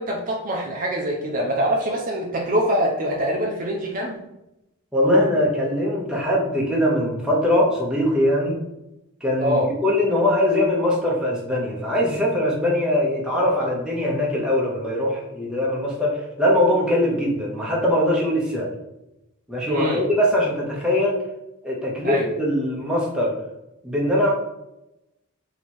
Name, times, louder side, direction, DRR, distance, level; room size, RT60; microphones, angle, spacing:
voice 1, 0.0-4.2 9.4-9.7 19.7-20.1 22.0-22.3, equal, 40° right, 0 dB, 0.6 m, -24 dB
voice 2, 4.9-8.6 9.2-18.7 19.5-21.2 21.6-23.3 23.8-24.3, left 1 dB, 5° right, -4 dB, 0.8 m, -21 dB
3.0 x 2.9 x 4.3 m, 0.91 s
head